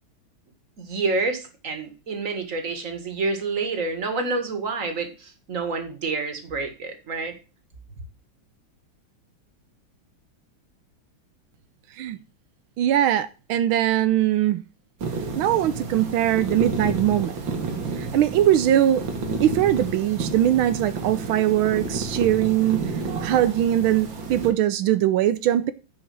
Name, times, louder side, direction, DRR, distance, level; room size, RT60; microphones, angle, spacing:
voice 1, 0.8-7.4, right 3 dB, 40° right, 2.1 m, -28 dB
voice 2, 12.8-14.6 15.4-17.3 18.0-19.0 19.4-22.8 23.2-25.7, right 12 dB, 90° right, 1.5 m, -21 dB
sound 1, 15.0-24.5, right 3 dB, 65° right, 2.4 m, -31 dB
9.6 x 5.0 x 7.7 m
omnidirectional pair, 2.2 m